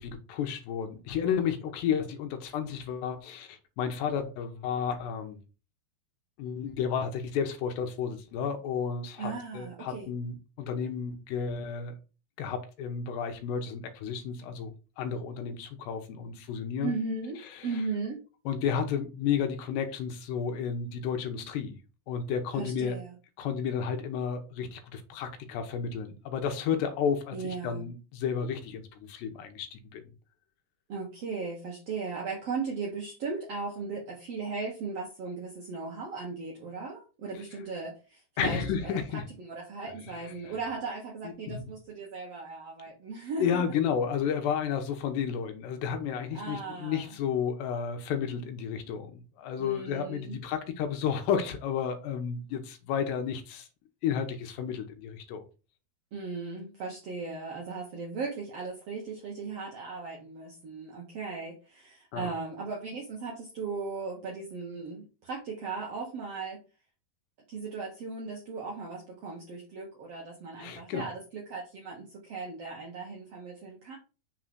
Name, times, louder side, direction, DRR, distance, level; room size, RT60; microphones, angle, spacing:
voice 1, 0.0-5.4 6.4-11.9 12.4-17.0 17.6-17.7 18.5-21.8 22.1-23.0 23.4-30.0 38.4-39.2 40.2-40.3 41.2-41.7 43.4-53.7 54.0-55.4 62.1-62.3 70.6-71.1, left 7 dB, 80° left, 3.1 m, -32 dB
voice 2, 9.2-10.1 16.8-18.2 22.5-23.1 27.3-27.8 30.9-43.6 46.3-47.1 49.6-50.4 56.1-66.6 67.5-74.0, right 4 dB, 65° right, 1.5 m, -37 dB
6.5 x 3.8 x 6.0 m
omnidirectional pair, 4.9 m